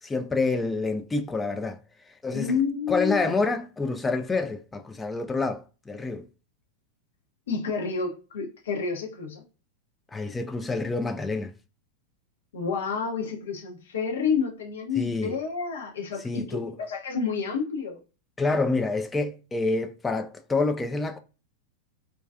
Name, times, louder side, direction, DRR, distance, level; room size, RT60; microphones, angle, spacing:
voice 1, 0.0-1.8 2.2-2.6 2.9-6.3 10.1-11.5 15.0-15.3 16.2-16.8 18.4-21.2, left 3 dB, 10° left, 0.3 m, -27 dB
voice 2, 2.3-3.3 7.5-9.4 12.5-18.0, left 5 dB, 65° left, 0.6 m, -29 dB
2.4 x 2.3 x 2.3 m
figure-of-eight pair, 90°, 0 cm